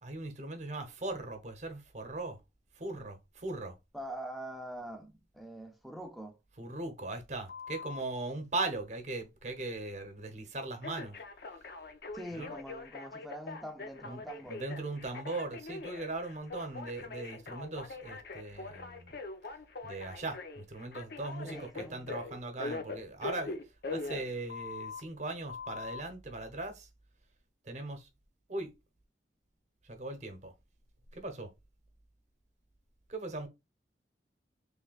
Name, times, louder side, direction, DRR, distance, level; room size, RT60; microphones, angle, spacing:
voice 1, 0.0-2.4 2.7-3.8 6.6-11.2 12.3-12.5 14.1-19.1 19.8-23.6 23.9-26.9 27.6-28.1 28.5-28.7 29.8-30.5 31.1-31.5 33.1-33.5, right 2 dB, 40° right, 0.9 m, -39 dB
voice 2, 3.9-6.4 12.1-14.6 21.4-22.2, right 1 dB, ahead, 0.5 m, -44 dB
Telephone, 7.5-8.0 10.8-25.0 25.5-26.0, left 3 dB, 60° left, 0.6 m, -42 dB
3.3 x 2.7 x 3.9 m
head